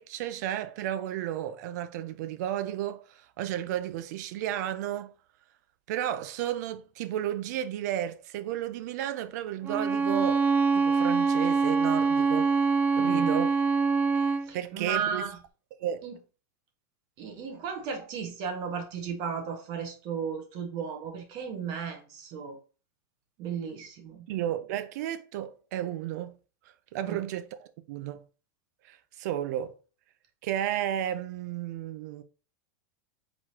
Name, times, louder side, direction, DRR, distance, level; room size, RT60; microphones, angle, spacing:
voice 1, 0.0-5.1 5.9-10.5 10.7-12.5 13.0-13.5 14.2-15.3 15.8-16.1 24.3-26.4 26.9-28.2 28.9-29.7 30.4-32.2, right 11 dB, 60° right, 0.6 m, -33 dB
Bowed string instrument, 9.6-14.5, right 4 dB, 15° right, 0.3 m, -24 dB
voice 2, 13.0-13.5 14.5-15.4 16.0-16.2 17.2-22.6 23.4-24.3 27.0-27.2, right 6 dB, 40° right, 1.5 m, -35 dB
4.8 x 4.0 x 2.8 m
supercardioid pair, 155°, 10 cm